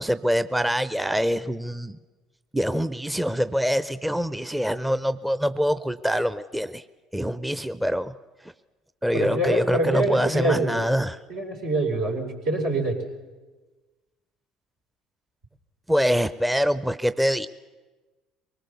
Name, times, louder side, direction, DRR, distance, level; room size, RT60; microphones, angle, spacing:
voice 1, 0.0-2.0 2.5-6.8 7.1-8.1 8.4-8.5 9.0-11.2 15.9-17.5, equal, 5° right, 13 dB, 0.7 m, -24 dB
voice 2, 9.1-10.9 11.3-12.9, right 1 dB, 75° right, -1 dB, 4.8 m, -25 dB
24.0 x 19.5 x 7.0 m, 1.3 s
hypercardioid pair, 65°, 0 cm